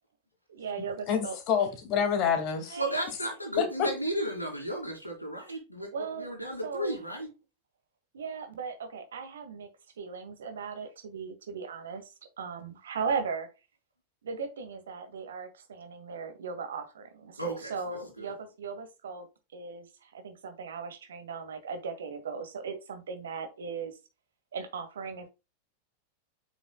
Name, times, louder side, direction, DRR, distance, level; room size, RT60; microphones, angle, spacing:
voice 1, 0.5-1.4 2.7-3.0 5.9-7.0 8.1-9.7 10.0-12.1 12.4-13.5 14.2-19.3 19.5-24.0 24.5-25.3, right 5 dB, 65° right, 1.8 m, -38 dB
voice 2, 1.1-2.8 3.6-3.9, left 7 dB, 40° left, 2.0 m, -27 dB
voice 3, 2.8-7.3 17.4-18.3, right 1 dB, 90° left, 3.2 m, -34 dB
8.0 x 6.0 x 2.2 m
figure-of-eight pair, 90°, 0 cm